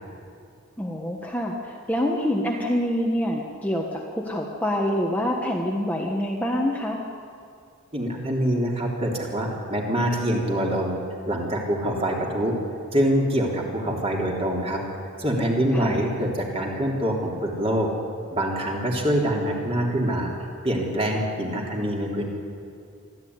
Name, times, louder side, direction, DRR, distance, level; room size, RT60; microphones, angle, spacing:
voice 1, 0.8-7.0 15.7-16.0, equal, 5° left, -1 dB, 1.4 m, -26 dB
voice 2, 7.9-11.0 11.3-12.5 12.9-14.8 15.2-17.9 18.3-20.3 20.6-22.2, equal, 25° right, -1 dB, 3.4 m, -25 dB
24.0 x 14.5 x 9.6 m, 2.5 s
head